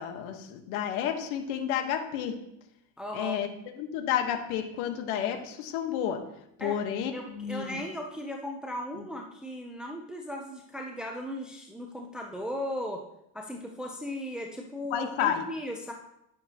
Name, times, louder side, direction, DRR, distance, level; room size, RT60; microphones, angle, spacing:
voice 1, 0.0-2.4 3.1-3.5 3.8-6.2 6.6-7.8 9.0-9.1 14.9-15.5, left 9 dB, 80° left, 5 dB, 1.6 m, -31 dB
voice 2, 3.0-3.4 6.6-6.8 7.1-13.0 13.3-15.9, equal, ahead, 0 dB, 0.8 m, -37 dB
11.5 x 7.1 x 3.0 m, 0.81 s
supercardioid pair, 115°, 42 cm